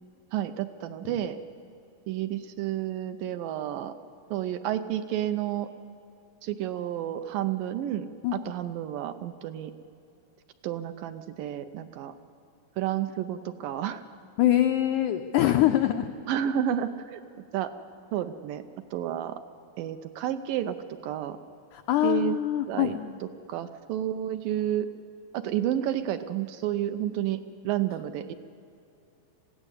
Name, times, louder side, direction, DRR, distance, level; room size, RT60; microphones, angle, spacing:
voice 1, 0.3-1.4 2.1-3.9 4.3-5.7 6.4-9.7 10.6-12.1 12.8-14.0 16.3-17.2 17.5-17.7 18.1-18.6 18.9-19.4 19.8-20.8 21.0-21.4 22.0-22.4 22.7-23.0 23.5-24.9 25.3-28.3, right 11 dB, 75° right, 9 dB, 2.1 m, -30 dB
voice 2, 8.2-8.5 14.4-16.1 21.7-23.2, left 13 dB, 85° left, 7 dB, 1.7 m, -24 dB
21.0 x 15.5 x 9.9 m, 2.7 s
omnidirectional pair, 4.4 m